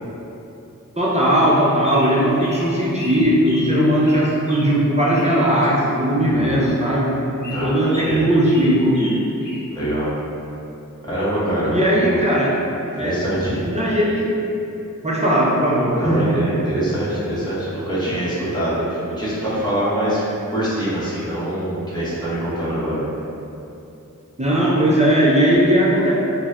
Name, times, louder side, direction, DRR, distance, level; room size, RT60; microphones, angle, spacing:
voice 1, 1.0-7.1 7.4-9.2 11.7-12.6 13.0-13.2 13.6-14.3 15.0-16.5 24.4-26.1, equal, 20° right, -6 dB, 0.5 m, -18 dB
sound 1, 1.5-3.7 4.0-5.9 6.3-6.6 6.8-7.1 7.4-9.6, left 1 dB, 60° left, 0.9 m, -37 dB
voice 2, 6.3-6.7 7.5-8.2 9.7-10.2 11.0-11.7 12.0-12.2 12.9-13.7 16.0-20.2 20.5-23.0, right 1 dB, 15° left, -10 dB, 1.0 m, -24 dB
3.9 x 2.1 x 2.3 m, 2.8 s
wide cardioid pair, 40°, 33 cm